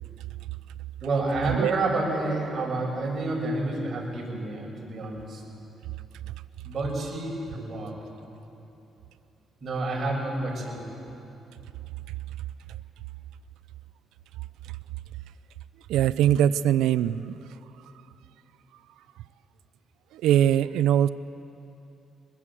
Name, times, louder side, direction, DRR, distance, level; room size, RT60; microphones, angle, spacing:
voice 1, 1.0-5.4 6.6-7.9 9.6-10.9, right 2 dB, 45° right, -2 dB, 7.1 m, -29 dB
voice 2, 15.9-17.4 20.1-21.1, right 11 dB, 90° right, 15 dB, 0.5 m, -21 dB
23.5 x 21.0 x 7.7 m, 2.9 s
cardioid pair, 90°, 0 cm